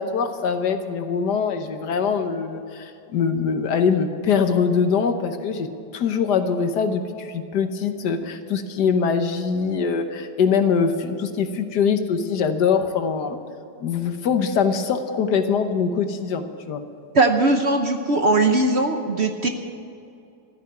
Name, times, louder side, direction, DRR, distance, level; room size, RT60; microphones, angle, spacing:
voice 1, 0.0-5.7 5.9-13.4 13.8-16.8, left 6 dB, 70° left, 8 dB, 1.5 m, -23 dB
voice 2, 17.1-19.5, right 2 dB, 50° right, 5 dB, 0.9 m, -19 dB
14.0 x 9.5 x 9.4 m, 2.6 s
omnidirectional pair, 1.9 m